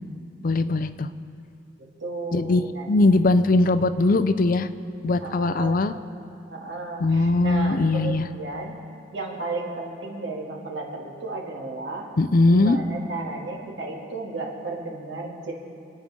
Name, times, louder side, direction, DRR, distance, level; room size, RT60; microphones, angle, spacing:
voice 1, 0.4-1.1 2.3-4.7 5.0-5.9 7.0-8.3 12.2-12.8, left 2 dB, 50° left, 12 dB, 0.5 m, -20 dB
voice 2, 2.0-2.9 5.2-6.0 6.3-8.8 9.1-12.1 12.5-15.5, right 3 dB, 75° right, -2 dB, 2.5 m, -34 dB
25.5 x 9.4 x 3.7 m, 2.7 s
head